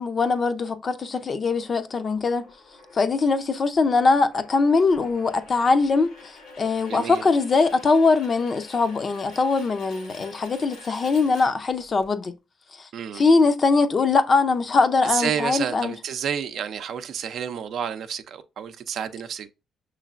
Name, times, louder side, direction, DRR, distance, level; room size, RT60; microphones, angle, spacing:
voice 1, 0.0-2.4 2.9-6.1 6.6-12.3 12.8-12.9 13.1-15.9, left 4 dB, 40° left, 0.5 m, -21 dB
sound 1, 1.5-12.1, left 3 dB, 85° left, 1.5 m, -48 dB
voice 2, 6.9-7.3 12.9-13.2 15.0-19.5, right 8 dB, 70° right, 0.5 m, -30 dB
5.8 x 3.1 x 2.4 m
cardioid pair, 90°, 0 cm